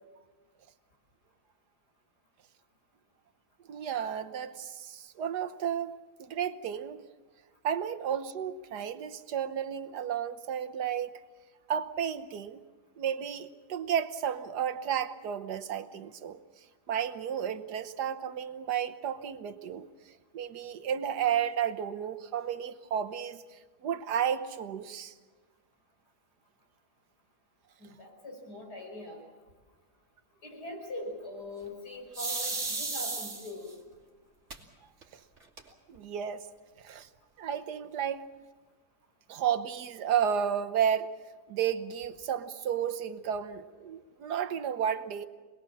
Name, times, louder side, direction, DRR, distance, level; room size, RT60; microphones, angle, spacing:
voice 1, 3.7-7.0 7.6-11.1 11.7-12.6 13.0-16.4 16.9-25.1 35.9-36.5 36.8-37.1 37.4-38.2 39.3-41.1 41.5-45.3, right 8 dB, 85° right, 10 dB, 1.6 m, -32 dB
voice 2, 27.8-29.2 30.4-33.7, left 1 dB, 90° left, 1 dB, 6.1 m, -42 dB
sound 1, 32.1-33.7 34.5-34.6 35.0-35.1 35.4-36.0, right 3 dB, 45° right, 2.8 m, -34 dB
27.0 x 20.0 x 7.4 m, 1.4 s
omnidirectional pair, 1.7 m